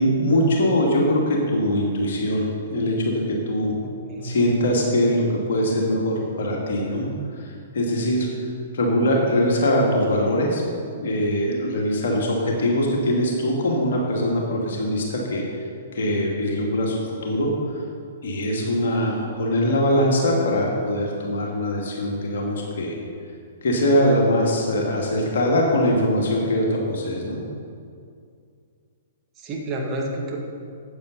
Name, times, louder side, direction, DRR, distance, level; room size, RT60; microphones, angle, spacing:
voice 1, 0.0-3.7 4.2-8.3 8.7-10.6 11.0-15.6 15.9-17.8 18.2-23.0 23.6-27.4, left 1 dB, 55° left, -1 dB, 2.1 m, -22 dB
voice 2, 3.8-4.4 29.4-30.4, right 1 dB, 25° right, -1 dB, 1.9 m, -30 dB
13.5 x 8.6 x 4.1 m, 2.4 s
figure-of-eight pair, 110°, 0 cm